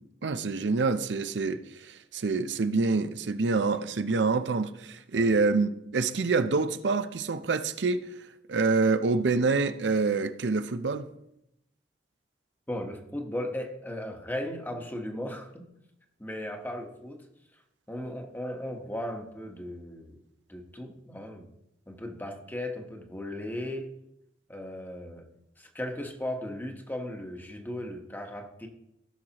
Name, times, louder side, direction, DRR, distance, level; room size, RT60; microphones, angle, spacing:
voice 1, 0.2-8.0 8.5-11.1, right 4 dB, 85° right, 0.6 m, -26 dB
voice 2, 12.7-15.6 16.2-17.2 17.9-20.2 20.5-21.5 21.9-23.9 24.5-25.3 25.6-28.7, left 1 dB, 10° left, 1.1 m, -36 dB
16.0 x 6.4 x 2.9 m
head